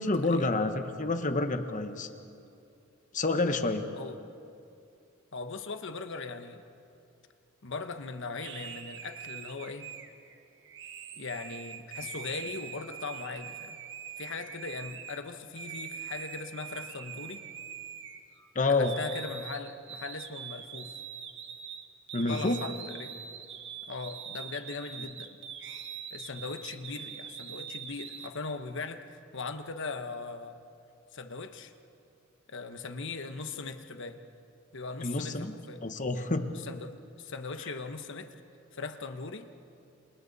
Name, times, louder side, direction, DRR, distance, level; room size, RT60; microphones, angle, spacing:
voice 1, 0.0-2.1 3.1-3.9 18.5-19.0 22.1-22.6 35.0-35.5 35.8-36.6, left 2 dB, 40° left, 8 dB, 1.1 m, -28 dB
voice 2, 5.3-6.6 7.6-9.9 11.1-13.8 14.2-17.4 18.7-20.9 22.3-23.2 23.9-25.4 26.1-30.6 31.1-31.7 32.5-34.2 34.7-35.9 36.5-38.3 38.7-39.5, left 4 dB, 65° left, 7 dB, 1.2 m, -39 dB
sound 1, 8.4-15.2 15.6-18.5 18.8-28.3, right 8 dB, 60° right, 1.4 m, -43 dB
28.5 x 28.0 x 4.2 m, 2.6 s
head